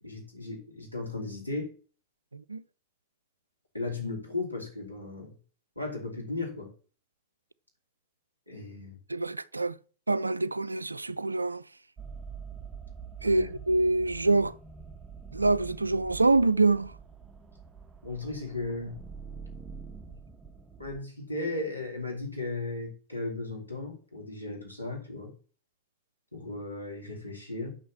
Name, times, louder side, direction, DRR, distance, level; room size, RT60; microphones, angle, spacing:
voice 1, 0.0-1.7 3.7-5.3 5.8-6.7 8.5-9.0 13.2-13.6 18.0-19.0 20.8-25.3 26.3-27.8, left 2 dB, 90° left, 2.7 m, -36 dB
voice 2, 2.3-2.6 9.1-9.8 10.1-11.6 13.2-14.5 15.3-16.9, right 2 dB, 80° right, 0.4 m, -25 dB
sound 1, 12.0-21.0, right 5 dB, 15° right, 0.8 m, -45 dB
6.2 x 5.5 x 6.9 m
figure-of-eight pair, 90°, 0 cm